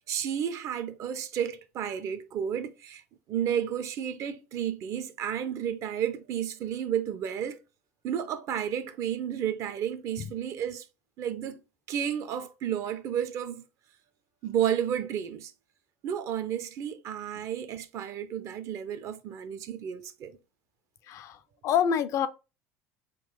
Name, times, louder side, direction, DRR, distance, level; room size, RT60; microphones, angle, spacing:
voice 1, 0.1-3.0 3.3-7.6 8.0-10.8 11.2-11.6 11.9-13.6 14.4-15.5 16.0-20.4, right 9 dB, 45° right, 0.5 m, -32 dB
voice 2, 21.1-22.3, left 8 dB, 45° left, 0.4 m, -27 dB
3.8 x 2.3 x 3.7 m
figure-of-eight pair, 70°, 7 cm